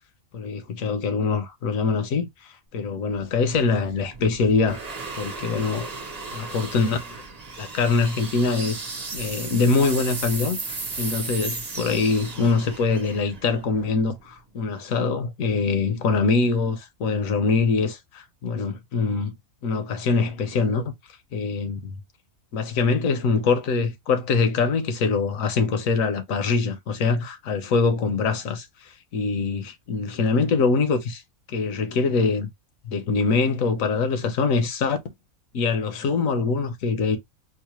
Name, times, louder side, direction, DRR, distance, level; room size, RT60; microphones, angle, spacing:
voice 1, 0.3-4.8 5.2-5.9 6.3-7.2 7.6-8.8 9.1-19.3 19.6-20.9 21.3-22.0 22.5-28.7 29.1-31.2 31.5-32.5 32.8-35.0 35.5-37.2, left 4 dB, 70° left, 1.2 m, -24 dB
sound 1, 3.1-14.4, right 3 dB, 35° right, 0.8 m, -35 dB
4.8 x 2.1 x 3.0 m
omnidirectional pair, 1.5 m